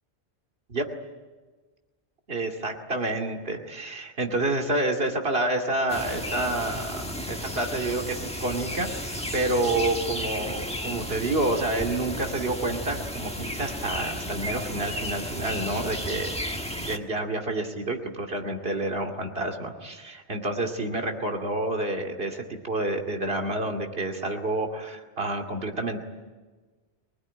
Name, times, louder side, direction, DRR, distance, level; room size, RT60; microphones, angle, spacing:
voice 1, 2.3-16.4 16.7-26.0, right 2 dB, 65° right, 2 dB, 2.7 m, -29 dB
sound 1, 5.9-17.0, equal, 5° left, 1.4 m, -33 dB
24.0 x 20.0 x 10.0 m, 1.3 s
omnidirectional pair, 1.1 m